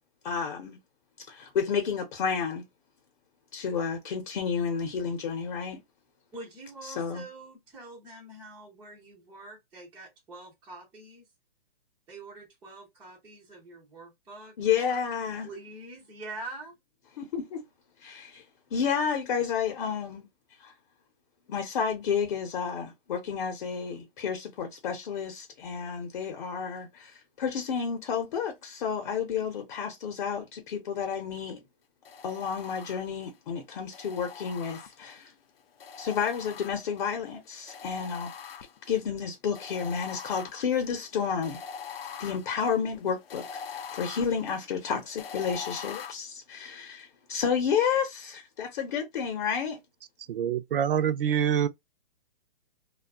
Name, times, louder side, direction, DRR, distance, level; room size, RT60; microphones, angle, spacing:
voice 1, 0.2-0.8 1.3-2.6 3.5-5.8 7.0-7.2 14.6-15.5 17.2-17.6 18.0-18.4 18.7-20.3 20.6-20.7 21.5-31.6 32.2-35.3 36.0-38.3 38.9-41.6 42.2-49.8, left 7 dB, 50° left, 0.7 m, -31 dB
voice 2, 6.3-11.3 12.1-14.5 15.4-16.7, right 2 dB, 5° right, 0.3 m, -45 dB
sound 1, 32.1-33.3 33.9-35.3 35.8-37.1 37.7-39.0 39.5-46.1, left 7 dB, 85° left, 0.5 m, -43 dB
voice 3, 50.2-51.7, right 8 dB, 70° right, 0.5 m, -26 dB
2.5 x 2.3 x 2.3 m
hypercardioid pair, 140°, 29 cm